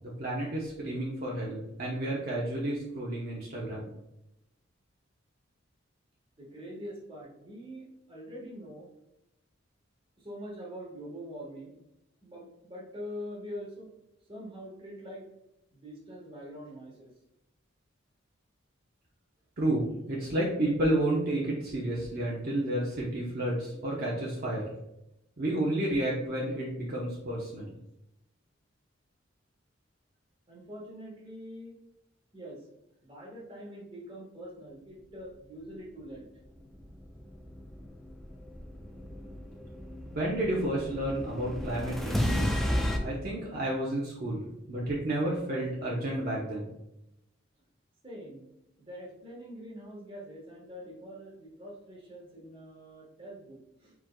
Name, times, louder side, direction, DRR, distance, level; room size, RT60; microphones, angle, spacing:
voice 1, 0.0-3.9 19.6-24.6 25.4-27.7 40.1-42.6 43.0-46.7, right 1 dB, 50° right, -5 dB, 0.8 m, -31 dB
voice 2, 6.4-8.9 10.2-11.8 12.2-13.9 14.3-15.3 15.7-17.1 30.5-31.7 32.3-32.7 33.0-36.2 48.0-48.5 48.8-53.9, equal, 25° right, -3 dB, 1.3 m, -44 dB
sound 1, 36.6-43.0, equal, ahead, 0.4 m, -33 dB
4.6 x 4.5 x 2.2 m, 0.87 s
head